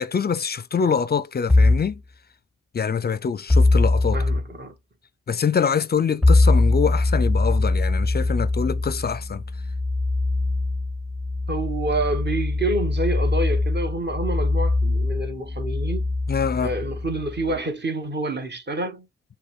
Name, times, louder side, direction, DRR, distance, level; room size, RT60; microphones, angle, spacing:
voice 1, 0.0-2.0 2.7-4.2 5.3-9.4 16.3-16.7, left 6 dB, 35° left, 0.5 m, -24 dB
sound 1, 1.5-1.9 3.5-4.4 6.2-17.6, left 2 dB, ahead, 1.0 m, -22 dB
voice 2, 4.1-4.7 11.5-16.1 16.6-19.1, right 2 dB, 35° right, 1.3 m, -28 dB
6.6 x 2.3 x 3.3 m
hypercardioid pair, 40°, 30 cm